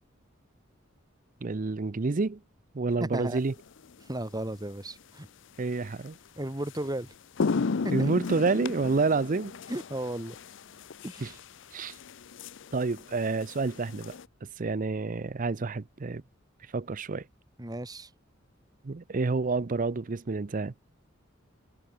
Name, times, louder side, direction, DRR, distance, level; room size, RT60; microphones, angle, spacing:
voice 1, 1.4-2.4 2.7-3.5 5.6-6.2 7.9-9.5 11.2-11.3 11.7-11.9 12.7-14.2 14.4-16.2 16.7-17.2 18.8-20.7, right 3 dB, 40° right, 0.6 m, -28 dB
voice 2, 3.0-3.4 4.0-5.3 6.4-7.1 8.0-8.1 9.7-10.4 11.0-11.3 17.6-18.1, right 1 dB, 20° right, 1.9 m, -35 dB
sound 1, 3.7-3.9 6.1-6.2 6.6-6.8 7.1-14.3, left 4 dB, 65° left, 0.6 m, -35 dB
head